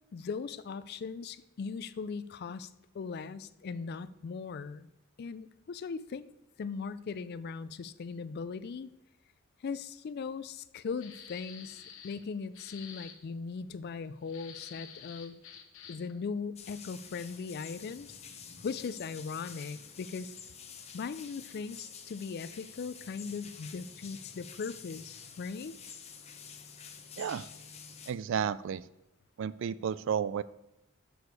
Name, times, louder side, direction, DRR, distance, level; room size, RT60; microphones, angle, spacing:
voice 1, 0.1-2.7 2.9-4.9 5.2-6.2 6.6-8.9 9.6-15.4 15.9-18.2 18.6-20.3 20.9-25.7, left 5 dB, 50° left, 15 dB, 0.4 m, -39 dB
sound 1, 11.0-12.2 12.5-13.2 14.3-16.1, left 7 dB, 75° left, 1.0 m, -49 dB
sound 2, 16.5-28.1, left 6 dB, 30° left, 0.7 m, -49 dB
voice 2, 27.2-27.5 28.1-28.8 29.4-30.4, right 7 dB, 65° right, 18 dB, 0.3 m, -32 dB
6.7 x 6.3 x 4.8 m, 0.89 s
head